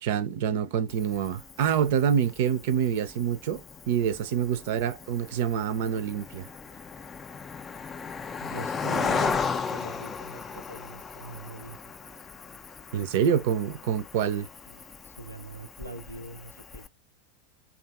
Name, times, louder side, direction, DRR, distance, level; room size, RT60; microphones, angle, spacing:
voice 1, 0.0-6.5 12.9-14.5, right 8 dB, 50° right, 0.5 m, -26 dB
Cricket, 0.9-16.9, left 5 dB, 20° left, 0.4 m, -36 dB
voice 2, 8.4-11.8 14.7-14.8 15.0-16.9, right 1 dB, 90° left, 0.4 m, -42 dB
2.6 x 2.5 x 2.3 m
figure-of-eight pair, 90°, 0 cm